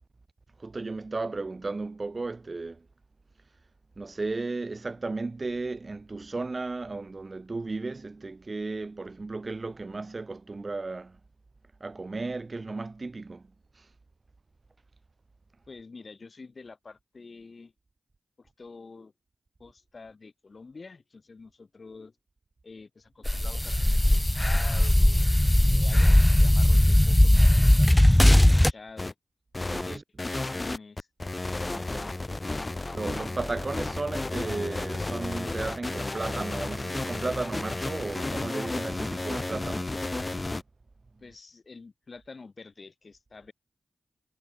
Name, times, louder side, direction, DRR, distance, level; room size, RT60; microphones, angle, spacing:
voice 1, 0.6-2.9 4.0-11.2 11.8-13.5 13.8-13.9 29.7-30.0 31.7-32.2 32.9-40.0, right 3 dB, 45° right, 4.9 m, -35 dB
voice 2, 15.7-17.7 18.4-19.1 19.6-22.1 22.6-25.3 25.7-29.1 29.8-31.1 32.3-32.5 41.2-43.5, left 4 dB, 55° left, 3.1 m, -47 dB
sound 1, 23.2-28.7, left 1 dB, 15° left, 0.3 m, -19 dB
sound 2, 29.0-29.1 29.5-40.6, left 2 dB, 35° left, 3.2 m, -32 dB
cardioid pair, 40°, 0 cm